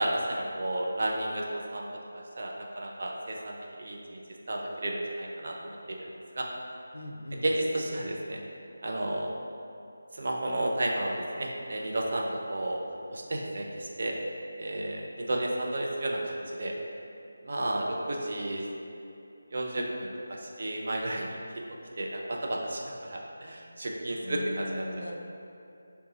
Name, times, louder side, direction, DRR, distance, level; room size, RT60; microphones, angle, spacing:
voice 1, 0.0-4.2 4.5-6.5 7.3-8.4 8.8-9.3 10.1-12.8 13.1-14.2 14.6-16.7 17.4-18.6 19.5-21.4 22.0-24.9, right 1 dB, 50° right, -1 dB, 0.4 m, -32 dB
voice 2, 6.9-7.4 24.2-25.2, left 1 dB, 75° left, 1 dB, 0.4 m, -38 dB
2.8 x 2.3 x 3.9 m, 2.7 s
figure-of-eight pair, 160°, 0 cm